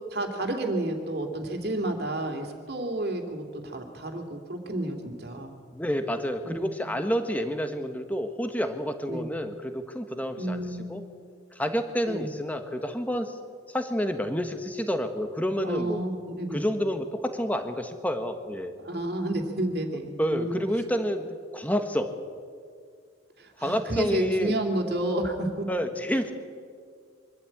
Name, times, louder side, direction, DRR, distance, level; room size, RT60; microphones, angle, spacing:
voice 1, 0.1-5.5 6.4-6.7 9.1-9.3 10.4-11.0 12.1-12.3 15.6-16.6 18.8-20.6 23.4-25.7, right 1 dB, 55° right, 3 dB, 2.6 m, -30 dB
voice 2, 5.7-10.6 10.9-11.0 11.5-13.3 13.7-16.0 16.5-18.7 20.2-22.1 23.6-24.6 25.7-26.3, equal, 10° left, 7 dB, 1.2 m, -29 dB
24.0 x 13.0 x 8.7 m, 2.1 s
head